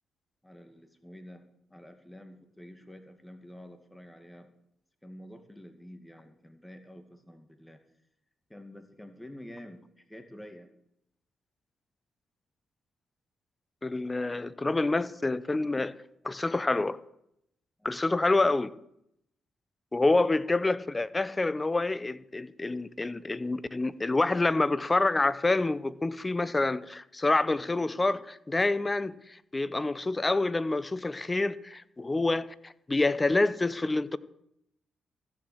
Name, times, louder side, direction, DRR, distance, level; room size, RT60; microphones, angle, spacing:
voice 1, 0.4-1.4 1.7-4.5 5.0-7.8 8.5-10.7 15.8-15.9 17.8-17.9, equal, 10° left, 2.2 m, -48 dB
voice 2, 13.8-15.9 16.2-17.0 17.8-18.7 19.9-34.2, left 2 dB, 25° left, 0.8 m, -27 dB
15.0 x 7.2 x 7.8 m
supercardioid pair, 50°, 0 cm